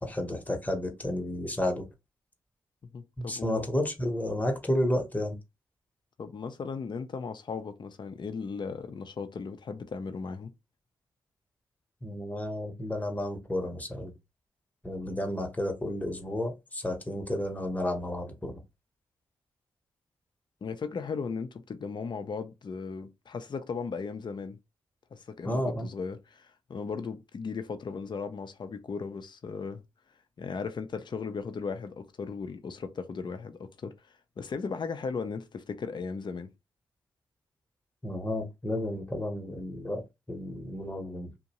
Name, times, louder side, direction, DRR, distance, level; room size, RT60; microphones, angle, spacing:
voice 1, 0.0-1.9 3.2-5.4 12.0-14.1 14.8-18.6 25.4-25.9 38.0-40.0 40.3-41.3, left 1 dB, 15° left, 0.9 m, -31 dB
voice 2, 2.8-3.7 6.2-10.5 20.6-24.6 25.1-29.8 30.4-36.5, left 5 dB, 50° left, 0.5 m, -37 dB
2.6 x 2.1 x 2.9 m
supercardioid pair, 40°, 10 cm